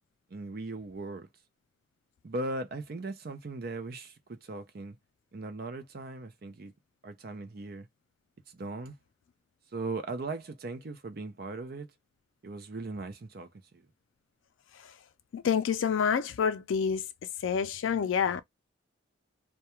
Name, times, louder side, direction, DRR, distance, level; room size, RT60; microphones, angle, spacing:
voice 1, 0.3-1.3 2.2-5.0 5.3-6.7 7.0-7.9 8.5-8.9 9.7-11.9 12.4-13.8, right 2 dB, 50° right, 0.5 m, -38 dB
voice 2, 15.3-17.1 17.4-18.4, left 7 dB, 75° left, 0.4 m, -27 dB
2.3 x 2.2 x 2.9 m
head